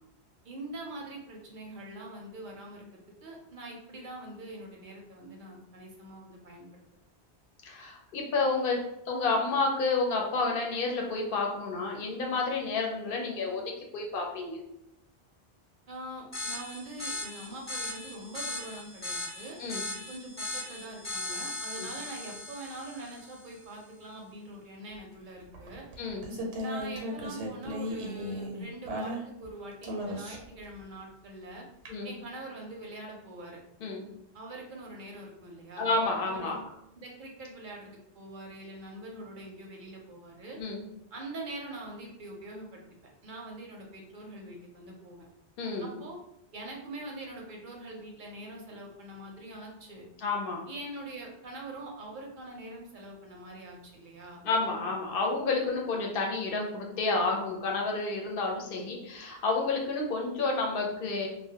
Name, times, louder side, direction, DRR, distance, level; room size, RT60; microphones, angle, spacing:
voice 1, 0.4-6.8 15.9-19.6 20.1-25.8 26.6-31.7 32.0-33.6 34.3-35.9 36.2-36.6 37.0-40.6 41.1-42.8 43.2-45.3 45.8-46.2 46.5-50.0 50.7-54.4 55.6-55.7, right 1 dB, 60° right, 0 dB, 0.6 m, -43 dB
voice 2, 7.6-14.6 19.6-19.8 21.8-21.9 26.0-26.3 31.9-32.1 33.8-34.0 35.8-36.6 40.6-40.8 45.6-45.9 50.2-50.6 54.4-61.3, left 3 dB, 60° left, 0 dB, 0.7 m, -30 dB
sound 1, 16.3-23.5, left 2 dB, 15° left, 0.5 m, -38 dB
sound 2, 25.5-29.5 29.8-30.6 31.9-32.0, equal, 85° right, 0.9 m, -36 dB
2.2 x 2.1 x 2.7 m, 0.84 s
omnidirectional pair, 1.1 m